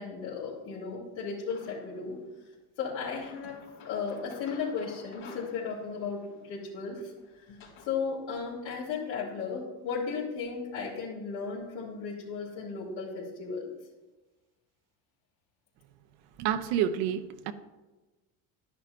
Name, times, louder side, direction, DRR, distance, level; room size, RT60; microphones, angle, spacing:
voice 1, 0.0-2.2 2.8-3.6 3.8-13.7, left 5 dB, 70° left, -7 dB, 2.9 m, -35 dB
sound 1, 1.5-2.1 2.8-7.9, left 5 dB, 85° left, 3.4 m, -52 dB
voice 2, 16.4-17.5, right 9 dB, 80° right, 9 dB, 0.9 m, -29 dB
11.5 x 10.0 x 2.6 m, 1.2 s
supercardioid pair, 105°, 46 cm